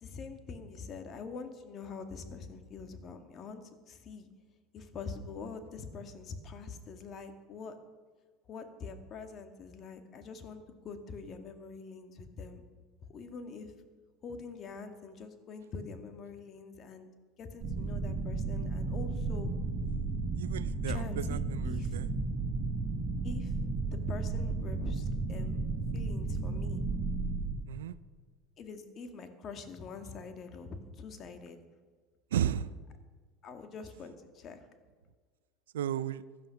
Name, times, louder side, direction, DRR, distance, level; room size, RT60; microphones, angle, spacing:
voice 1, 0.0-4.3 4.7-7.8 8.5-12.6 13.1-13.7 14.2-17.1 17.4-19.5 20.9-22.0 23.2-23.5 23.9-25.6 25.9-26.8 28.6-31.6 33.4-34.6, left 4 dB, 45° left, 7 dB, 1.9 m, -44 dB
sound 1, 17.6-27.6, right 3 dB, 35° right, 3.1 m, -33 dB
voice 2, 20.4-22.1 27.7-27.9 32.3-32.7 35.7-36.2, right 10 dB, 90° right, 17 dB, 0.5 m, -34 dB
15.5 x 11.5 x 6.0 m, 1.5 s
hypercardioid pair, 95°, 0 cm